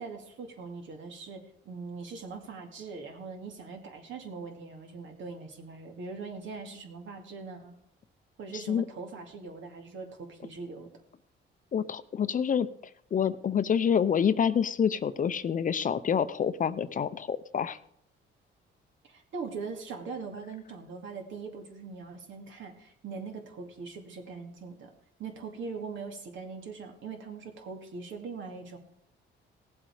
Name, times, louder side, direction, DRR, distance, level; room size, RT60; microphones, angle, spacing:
voice 1, 0.0-7.7 8.4-10.9 19.0-24.9 25.2-28.8, right 4 dB, 75° right, 3 dB, 2.4 m, -41 dB
voice 2, 8.5-8.8 11.7-12.7 13.1-17.8, left 7 dB, 40° left, 14 dB, 0.6 m, -27 dB
17.5 x 7.7 x 4.9 m, 0.73 s
cardioid pair, 90°, 20 cm